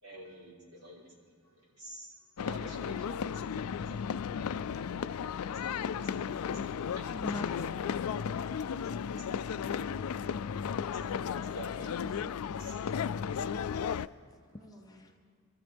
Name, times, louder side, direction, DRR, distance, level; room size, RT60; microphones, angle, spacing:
voice 1, 0.0-1.2 1.4-3.3 3.6-4.1 5.5-5.8 6.2-6.6 6.9-7.1 8.2-8.4 8.8-12.8, right 1 dB, 85° right, -4 dB, 3.9 m, -50 dB
sound 1, 2.4-14.1, left 7 dB, 90° left, 0.4 m, -34 dB
voice 2, 5.5-6.4 13.2-14.0 14.5-15.2, equal, 10° right, -7 dB, 4.3 m, -56 dB
voice 3, 7.1-8.2 11.8-12.3 14.9-15.1, left 1 dB, 15° left, 4 dB, 0.6 m, -43 dB
24.5 x 14.0 x 3.5 m, 2.1 s
head